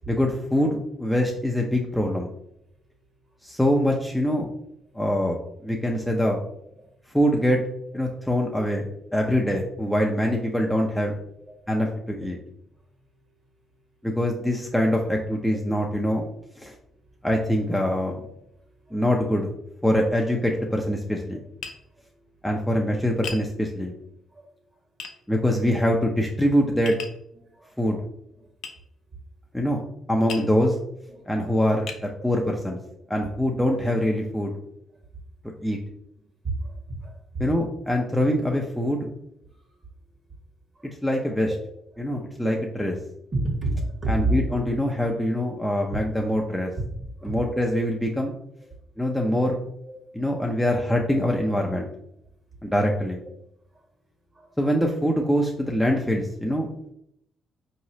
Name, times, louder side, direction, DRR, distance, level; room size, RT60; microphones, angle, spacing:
voice 1, 0.1-2.3 3.4-4.5 4.9-6.4 7.1-7.6 7.9-11.1 11.7-12.4 14.0-16.2 16.6-16.7 17.2-18.2 18.9-19.5 19.8-21.4 22.4-23.9 25.3-27.0 27.8-28.0 29.5-29.8 30.1-30.8 31.3-32.8 33.1-34.5 35.6-35.8 37.4-39.1 41.0-41.5 42.0-43.0 44.1-46.7 47.2-48.3 49.0-49.6 50.1-51.9 52.6-53.2 54.6-56.7, equal, 5° left, -1 dB, 0.5 m, -24 dB
voice 2, 16.6-17.1 18.5-19.0 21.8-22.0 23.8-23.9 24.3-24.8 27.3-28.0 28.3-28.5 31.1-31.6 32.2-32.3 34.9-35.0 36.2-37.4 38.0-38.1 39.5-39.8 40.7-40.9 41.9-42.1 43.3-44.4 47.2-47.4 49.9-50.1 53.7-53.8 54.3-54.6, right 2 dB, 40° right, -1 dB, 1.5 m, -32 dB
Tap, 21.6-21.8 23.2-23.5 25.0-25.2 26.9-27.2 28.6-28.8 30.3-30.5 31.2-31.3 31.9-32.1, left 6 dB, 75° left, 0.5 m, -36 dB
4.8 x 3.0 x 2.7 m, 0.75 s
cardioid pair, 90°, 0 cm